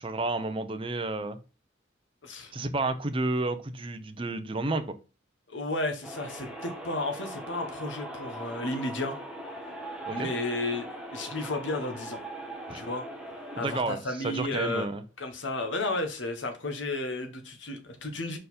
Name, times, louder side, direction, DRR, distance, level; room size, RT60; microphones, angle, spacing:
voice 1, 0.0-1.4 2.5-4.8 10.1-10.3 12.7-12.8 13.6-15.0, right 2 dB, 30° right, 9 dB, 0.7 m, -31 dB
voice 2, 2.2-2.5 5.5-9.2 10.1-12.2 12.7-13.1 13.5-14.9 15.2-18.4, left 2 dB, 75° left, 5 dB, 1.3 m, -33 dB
sound 1, 6.0-13.8, right 1 dB, 5° right, 1.3 m, -40 dB
5.1 x 4.6 x 4.2 m, 0.31 s
head